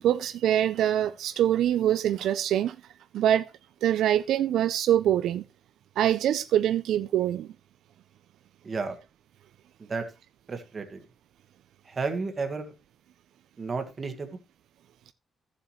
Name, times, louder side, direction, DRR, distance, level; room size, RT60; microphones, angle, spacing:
voice 1, 0.0-2.8 3.1-3.5 3.8-5.4 6.0-7.5, right 11 dB, 80° right, 0.4 m, -24 dB
voice 2, 8.6-9.0 9.8-10.1 10.5-11.0 11.8-12.7 13.6-14.3, right 4 dB, 30° right, 1.5 m, -32 dB
14.0 x 7.2 x 3.1 m
cardioid pair, 155°, 0 cm